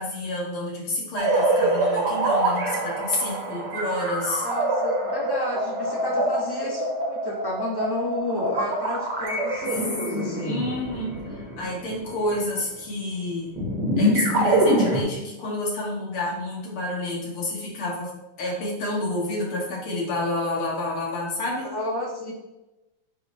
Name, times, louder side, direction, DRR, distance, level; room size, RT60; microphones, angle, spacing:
voice 1, 0.0-4.5 10.4-13.6 14.0-18.1 18.4-21.7, left 1 dB, 85° left, -3 dB, 2.5 m, -29 dB
sound 1, 1.2-12.5 13.6-15.0, right 1 dB, 60° right, 1.5 m, -25 dB
voice 2, 4.4-10.6 21.6-22.3, left 1 dB, 15° left, -4 dB, 0.8 m, -31 dB
9.2 x 3.7 x 2.7 m, 1.0 s
omnidirectional pair, 2.3 m